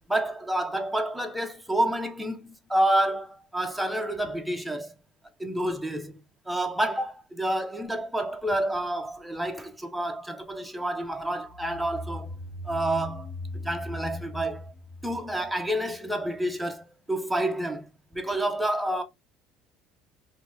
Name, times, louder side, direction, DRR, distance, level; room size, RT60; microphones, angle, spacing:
voice 1, 0.1-4.9 5.4-6.2 6.5-12.3 12.6-13.3 13.6-14.7 15.0-17.9 18.1-19.0, right 1 dB, 5° right, 0.7 m, -29 dB
sound 1, 11.5-16.1, left 1 dB, 65° left, 1.4 m, -39 dB
2.9 x 2.6 x 3.4 m
supercardioid pair, 100°, 0 cm